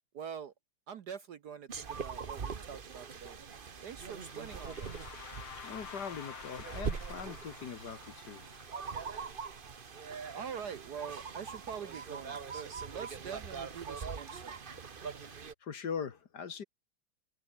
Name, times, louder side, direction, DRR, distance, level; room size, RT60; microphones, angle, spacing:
voice 1, 0.1-0.5 0.9-3.4 3.8-5.1 10.3-14.6, right 7 dB, 60° right, 1.3 m, -45 dB
sound 1, 1.7-15.5, right 6 dB, 35° right, 0.8 m, -42 dB
sound 2, 4.0-10.0, left 9 dB, 85° left, 2.4 m, -51 dB
voice 2, 5.4-8.5 14.7-14.8 15.2-16.6, left 6 dB, 50° left, 2.0 m, -42 dB
omnidirectional pair, 2.4 m